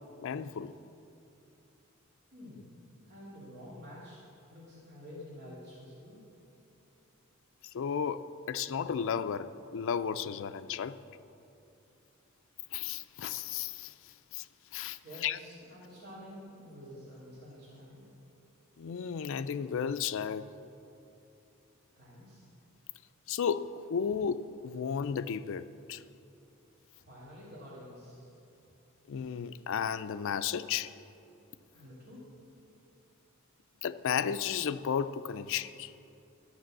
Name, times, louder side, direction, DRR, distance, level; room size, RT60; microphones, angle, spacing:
voice 1, 0.2-0.7 7.7-10.9 12.7-13.9 14.3-14.5 14.7-15.4 18.8-20.5 23.3-26.0 29.1-30.9 33.8-35.9, left 7 dB, 65° left, 0.4 m, -33 dB
voice 2, 2.3-2.6 3.0-4.2 4.5-6.2 15.0-18.0 22.0-22.4 26.9-28.3 31.7-32.2, equal, 50° right, 2.8 m, -49 dB
12.0 x 6.0 x 7.7 m
head